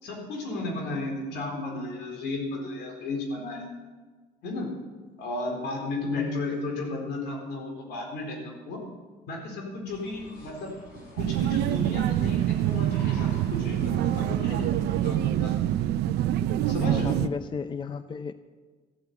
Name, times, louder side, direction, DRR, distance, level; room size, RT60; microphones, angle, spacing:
voice 1, 0.0-3.7 4.4-4.7 5.2-8.8 9.3-10.7 11.2-15.6 16.7-17.1, left 2 dB, 85° left, 1 dB, 4.0 m, -34 dB
voice 2, 6.1-6.4 17.0-18.3, left 6 dB, 30° left, 12 dB, 0.6 m, -34 dB
sound 1, 9.9-15.1, left 2 dB, 60° left, 5.6 m, -49 dB
sound 2, 11.2-17.3, right 12 dB, 80° right, 0.6 m, -25 dB
14.5 x 8.4 x 8.2 m, 1.4 s
cardioid pair, 110°, 17 cm